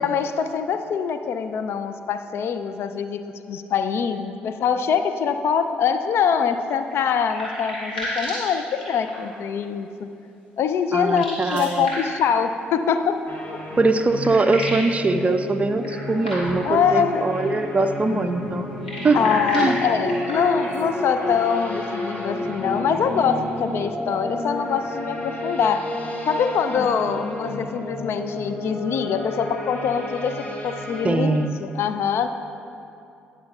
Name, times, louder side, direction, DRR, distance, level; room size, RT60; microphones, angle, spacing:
voice 1, 0.0-3.2 3.5-10.1 10.6-13.2 16.6-17.3 19.1-25.9 26.3-32.3, left 7 dB, 50° left, 9 dB, 0.4 m, -24 dB
sound 1, 6.8-9.4 11.0-12.3 13.6-13.7 14.0-14.9 15.8-16.7 18.7-20.8, equal, 85° left, 2.4 m, -33 dB
voice 2, 10.9-11.9 13.8-18.7 19.0-19.2 19.5-19.8 31.0-31.6, right 3 dB, 25° right, 9 dB, 0.5 m, -22 dB
sound 2, 13.3-31.2, left 1 dB, 30° left, 1.7 m, -31 dB
19.5 x 6.8 x 2.4 m, 2.6 s
figure-of-eight pair, 45°, 5 cm